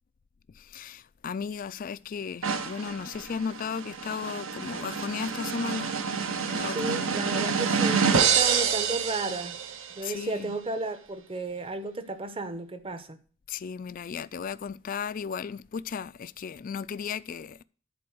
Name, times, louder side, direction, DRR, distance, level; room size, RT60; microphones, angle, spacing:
voice 1, 0.6-5.9 6.5-7.2 10.0-10.5 13.5-17.6, left 6 dB, 40° left, 0.3 m, -35 dB
sound 1, 2.4-10.0, right 6 dB, 70° right, 0.9 m, -28 dB
voice 2, 6.7-9.6 10.0-13.2, right 2 dB, 25° right, 0.8 m, -33 dB
10.5 x 4.3 x 6.2 m
head